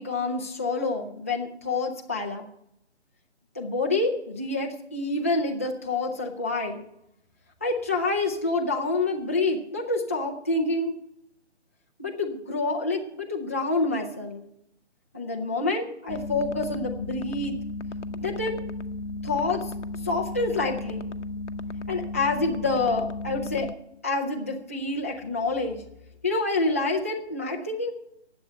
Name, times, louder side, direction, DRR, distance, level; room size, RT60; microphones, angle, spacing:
voice 1, 0.0-2.5 3.6-6.8 7.6-10.9 12.0-14.4 15.1-17.6 18.1-18.6 19.2-19.7 20.0-21.1 21.9-23.7 24.0-25.8 26.2-27.9, left 3 dB, 15° left, -2 dB, 0.5 m, -27 dB
sound 1, 16.1-23.7, left 2 dB, 85° left, 0.9 m, -34 dB
10.5 x 8.0 x 7.7 m, 0.78 s
figure-of-eight pair, 150°, 35 cm